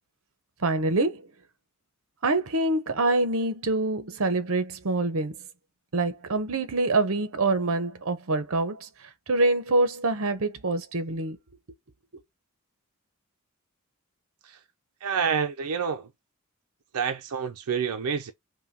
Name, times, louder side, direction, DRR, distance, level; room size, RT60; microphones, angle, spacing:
voice 1, 0.6-1.3 2.2-5.4 5.9-8.9 9.3-11.4, right 2 dB, 65° right, 0.8 m, -25 dB
voice 2, 15.0-16.1 16.9-18.3, right 6 dB, 90° right, 0.5 m, -28 dB
5.5 x 2.2 x 2.8 m
head